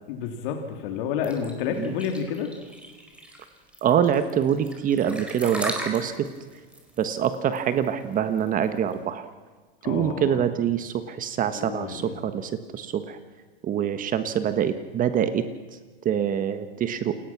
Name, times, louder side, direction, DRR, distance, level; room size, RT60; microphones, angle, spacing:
voice 1, 0.1-2.5 9.8-10.4 11.5-12.2, left 7 dB, 55° left, 4 dB, 3.3 m, -30 dB
sound 1, 1.2-8.9, right 1 dB, 5° right, 4.5 m, -37 dB
voice 2, 3.8-6.3 7.0-9.2 9.8-13.2 13.6-15.8 16.0-17.2, right 9 dB, 25° right, 10 dB, 1.4 m, -25 dB
28.5 x 21.0 x 6.1 m, 1.4 s
hypercardioid pair, 130°, 30 cm